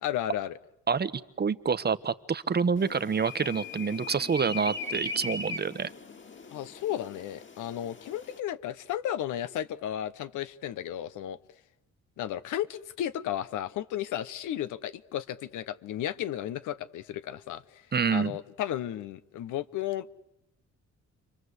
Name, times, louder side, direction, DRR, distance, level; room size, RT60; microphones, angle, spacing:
voice 1, 0.0-0.6 6.5-11.4 12.2-17.8 18.1-20.1, left 11 dB, 85° left, 13 dB, 1.1 m, -34 dB
voice 2, 1.4-5.9 17.9-18.3, right 6 dB, 35° right, 14 dB, 1.1 m, -27 dB
sound 1, 2.8-8.4, left 3 dB, 40° left, 2.2 m, -39 dB
29.5 x 23.5 x 8.2 m, 0.80 s
cardioid pair, 90°, 30 cm